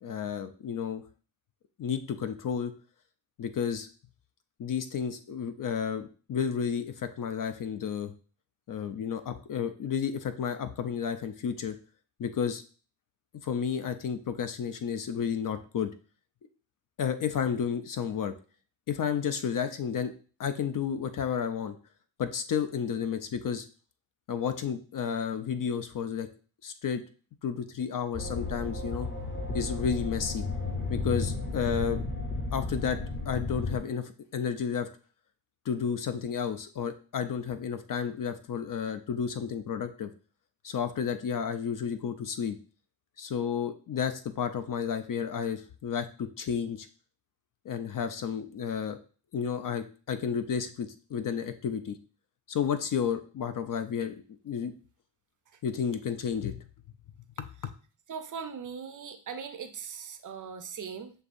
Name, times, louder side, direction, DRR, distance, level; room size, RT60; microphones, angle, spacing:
voice 1, 0.0-1.0 1.8-2.7 3.4-3.9 4.6-8.1 8.7-11.8 12.2-12.6 13.4-15.9 17.0-18.3 18.9-20.1 20.4-21.8 22.2-23.7 24.3-26.3 26.6-27.0 27.4-29.1 29.5-30.4 30.9-32.0 32.5-33.0 33.3-34.9 35.7-40.1 40.6-42.6 43.2-46.9 47.7-49.0 49.3-52.0 52.5-54.2 54.4-54.7 55.6-56.6 57.4-57.5, left 7 dB, 45° left, 9 dB, 0.4 m, -31 dB
sound 1, 28.1-33.8, left 3 dB, 25° left, 0.8 m, -33 dB
voice 2, 58.1-61.1, right 6 dB, 40° right, 8 dB, 0.5 m, -39 dB
6.6 x 2.6 x 2.5 m, 0.38 s
cardioid pair, 85°, 49 cm